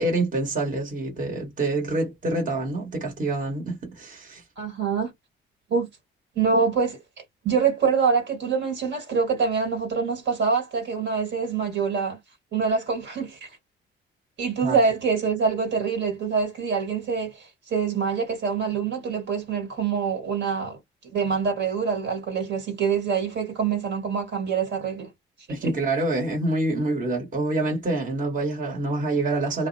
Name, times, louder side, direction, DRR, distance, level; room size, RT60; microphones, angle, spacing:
voice 1, 0.0-4.4 14.6-14.8 25.5-29.7, right 2 dB, 45° right, 1.3 m, -26 dB
voice 2, 4.6-5.1 5.7-5.9 6.3-7.0 7.4-12.2 12.5-13.5 14.4-20.8 21.1-25.1 25.5-25.8, right 5 dB, 65° right, 1.5 m, -25 dB
2.4 x 2.0 x 2.6 m
cardioid pair, 90°, 20 cm